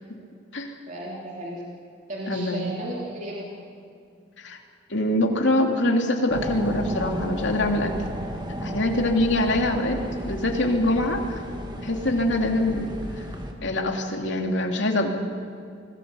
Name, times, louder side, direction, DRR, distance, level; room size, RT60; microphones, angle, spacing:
voice 1, 0.9-1.6 2.1-3.5, right 1 dB, 40° right, -4 dB, 3.4 m, -34 dB
voice 2, 2.3-2.8 4.4-4.6 4.9-7.9 8.6-10.0 10.2-11.4 11.8-12.8 13.6-15.1, left 1 dB, 70° left, 2 dB, 2.7 m, -24 dB
sound 1, 6.3-13.5, equal, 25° right, 2.1 m, -34 dB
25.0 x 19.0 x 7.0 m, 2.3 s
head